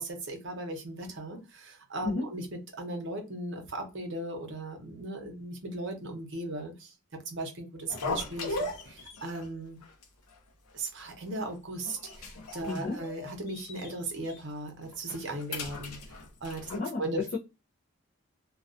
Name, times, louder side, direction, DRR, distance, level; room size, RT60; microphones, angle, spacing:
voice 1, 0.0-2.5 2.8-6.9 7.3-9.8 10.7-16.0 16.4-16.7 17.0-17.3, right 1 dB, 55° right, 4 dB, 0.7 m, -37 dB
sound 1, 7.9-9.5 9.8-10.0 10.3-10.4 11.0-11.5 11.8-13.9 14.2-14.4 14.9-16.8, left 2 dB, 90° left, 0.6 m, -38 dB
voice 2, 12.7-13.0 16.7-17.0, left 3 dB, 35° left, -3 dB, 0.4 m, -32 dB
2.3 x 2.2 x 2.4 m, 0.27 s
head